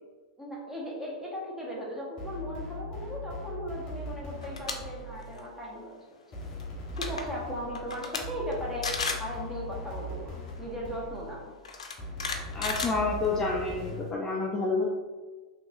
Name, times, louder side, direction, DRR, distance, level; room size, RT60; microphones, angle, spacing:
voice 1, 0.4-6.0 6.3-6.4 7.0-11.5, equal, 10° right, -4 dB, 1.1 m, -37 dB
sound 1, 2.2-5.4 6.3-11.5 12.0-14.2, left 1 dB, 35° left, 1.0 m, -40 dB
sound 2, 4.4-4.7 5.2-5.4 6.6-6.7 6.9-7.2 7.7-8.2 8.5-8.6 8.8-9.3 10.5-10.6 11.6-13.5, left 4 dB, 85° left, 0.5 m, -33 dB
voice 2, 12.5-14.9, left 3 dB, 20° left, -2 dB, 0.4 m, -29 dB
3.6 x 2.8 x 2.5 m, 1.4 s
hypercardioid pair, 105°, 3 cm